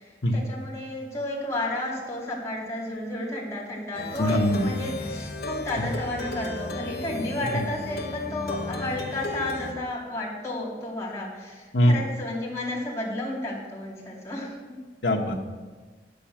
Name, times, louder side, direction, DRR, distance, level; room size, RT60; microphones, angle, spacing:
voice 1, 0.3-14.8, left 1 dB, 15° left, -5 dB, 2.5 m, -32 dB
Plucked string instrument, 3.9-9.7, left 2 dB, 65° left, 1.1 m, -34 dB
voice 2, 4.2-4.6 5.8-5.9 7.5-7.6 11.7-12.0 15.0-15.3, equal, 85° left, 2 dB, 1.3 m, -22 dB
9.0 x 7.0 x 7.3 m, 1.3 s
head